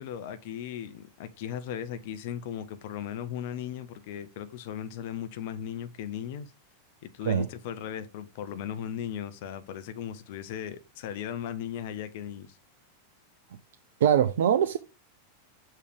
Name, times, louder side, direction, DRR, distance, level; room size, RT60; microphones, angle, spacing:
voice 1, 0.0-6.5 7.0-12.6, left 9 dB, 50° left, 0.7 m, -37 dB
voice 2, 14.0-14.8, right 9 dB, 60° right, 0.5 m, -22 dB
6.6 x 3.3 x 5.0 m
figure-of-eight pair, 90°, 0 cm